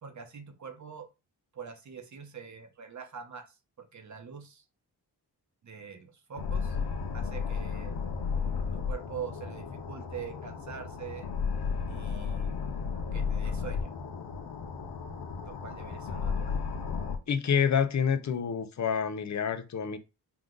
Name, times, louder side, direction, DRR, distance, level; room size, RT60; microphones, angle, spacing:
voice 1, 0.0-1.1 1.5-4.6 5.6-6.8 7.1-7.9 8.7-11.3 11.9-12.6 13.1-13.9 15.4-16.3, right 7 dB, 45° right, 0.9 m, -44 dB
sound 1, 6.4-17.2, left 5 dB, 85° left, 0.8 m, -33 dB
voice 2, 17.3-20.0, left 7 dB, 45° left, 0.6 m, -28 dB
4.8 x 2.5 x 3.8 m
wide cardioid pair, 125°, 39 cm